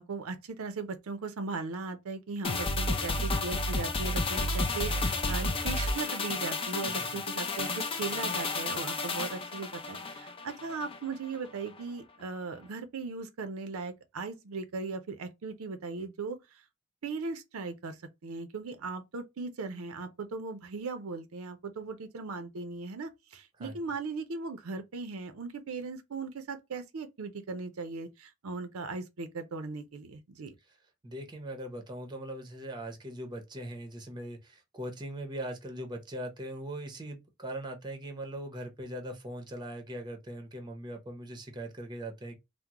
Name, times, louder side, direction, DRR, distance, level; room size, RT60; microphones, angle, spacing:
voice 1, 0.0-16.4 17.0-18.0 18.2-30.5, right 4 dB, 80° right, 0.5 m, -38 dB
sound 1, 2.4-11.0 11.3-11.5, left 2 dB, 25° left, 0.4 m, -31 dB
voice 2, 31.0-42.4, right 1 dB, 20° right, 0.6 m, -40 dB
3.6 x 2.0 x 2.9 m
head